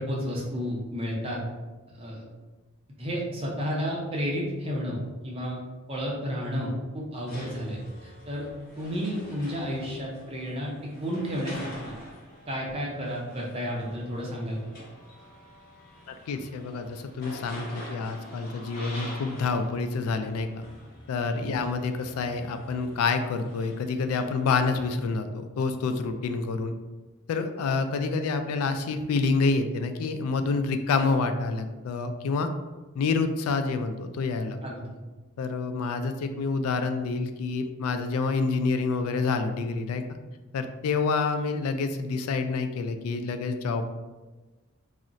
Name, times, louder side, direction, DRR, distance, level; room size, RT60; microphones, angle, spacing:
voice 1, 0.0-1.4 1.9-2.2 3.0-5.0 5.2-5.6 5.9-8.5 8.8-10.7 11.0-11.9 12.5-14.6 21.3-21.6 34.6-34.8, equal, 25° right, -3 dB, 0.5 m, -31 dB
sound 1, 7.3-24.9, equal, 45° left, 0.9 m, -46 dB
voice 2, 16.1-20.5 21.1-26.8 27.3-32.5 33.0-34.6 35.4-40.0 40.5-43.9, left 4 dB, 85° left, 8 dB, 0.3 m, -28 dB
2.4 x 2.1 x 3.8 m, 1.2 s
head